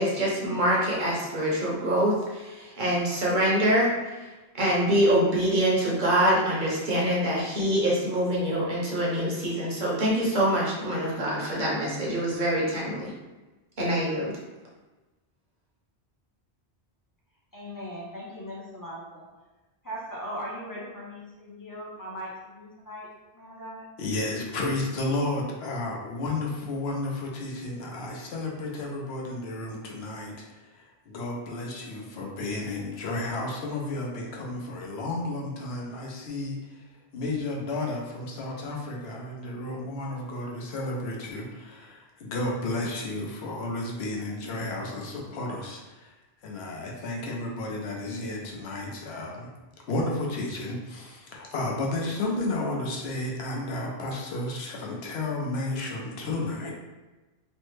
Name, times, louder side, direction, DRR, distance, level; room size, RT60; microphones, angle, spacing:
voice 1, 0.0-3.9 4.6-13.1 13.8-14.3, equal, 55° right, -4 dB, 0.8 m, -25 dB
voice 2, 17.5-19.2 19.8-23.1 23.3-23.9, equal, 25° left, -5 dB, 0.5 m, -39 dB
voice 3, 24.0-30.4 30.7-36.6 37.1-46.1 46.4-49.5 49.9-56.7, left 2 dB, 80° left, -1 dB, 0.9 m, -32 dB
3.1 x 2.1 x 3.1 m, 1.1 s
omnidirectional pair, 1.1 m